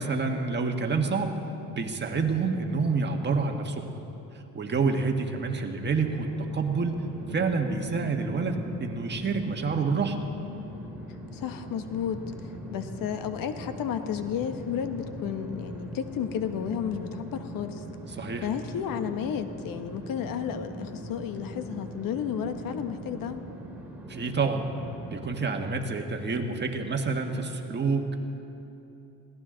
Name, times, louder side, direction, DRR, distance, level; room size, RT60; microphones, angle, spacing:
voice 1, 0.0-1.3 1.7-3.9 4.5-7.0 7.3-10.2 18.2-18.5 24.1-24.6 25.1-28.1, right 4 dB, 30° right, 3 dB, 1.5 m, -28 dB
sound 1, 6.0-25.2, right 1 dB, 5° right, 2.5 m, -41 dB
voice 2, 11.3-12.2 12.7-17.8 18.4-23.4, left 8 dB, 70° left, 9 dB, 1.1 m, -32 dB
21.5 x 16.5 x 3.9 m, 2.9 s
cardioid pair, 105°, 35 cm